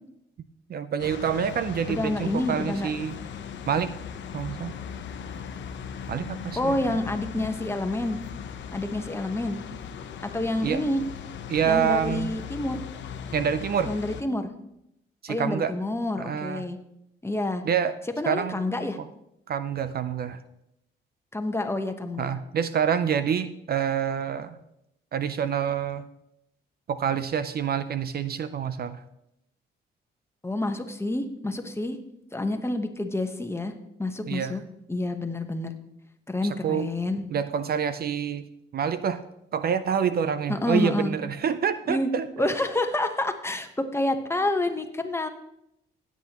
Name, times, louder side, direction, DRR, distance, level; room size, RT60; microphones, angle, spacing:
voice 1, 0.7-3.2 3.7-3.9 4.3-4.8 6.1-7.0 10.6-10.8 11.5-12.3 13.3-13.9 15.2-15.7 16.2-16.6 17.6-17.9 18.3-18.6 19.5-20.4 22.2-24.6 25.1-26.0 26.9-29.0 34.3-34.6 36.4-36.9 37.3-38.5 38.7-39.2 39.5-42.5, right 8 dB, 50° right, 12 dB, 0.6 m, -27 dB
sound 1, 1.0-14.2, left 7 dB, 65° left, 0.9 m, -38 dB
voice 2, 1.9-2.9 6.6-8.2 8.7-9.6 10.2-11.0 11.6-12.8 13.9-14.5 15.3-16.8 17.2-17.6 18.2-19.0 21.3-22.3 30.4-32.0 32.3-33.7 34.0-34.6 34.9-35.7 36.3-37.2 40.5-41.1 41.9-42.1 42.4-45.3, left 2 dB, 10° left, 6 dB, 1.1 m, -28 dB
16.0 x 8.4 x 3.0 m, 0.82 s
cardioid pair, 90°, 20 cm